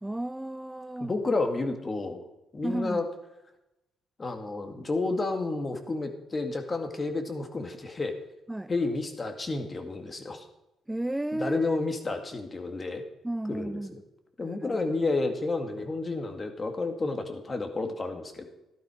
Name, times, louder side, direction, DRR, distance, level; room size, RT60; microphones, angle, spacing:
voice 1, 0.0-1.1 2.6-3.0 8.5-8.7 10.9-11.8 13.2-14.0 14.4-14.9, right 1 dB, 10° right, 12 dB, 0.4 m, -33 dB
voice 2, 1.0-2.2 2.5-3.1 4.2-8.1 8.7-10.5 11.3-13.0 13.5-14.0 14.4-18.4, left 3 dB, 30° left, 6 dB, 2.1 m, -31 dB
13.5 x 11.5 x 5.0 m, 0.93 s
cardioid pair, 90°, 0 cm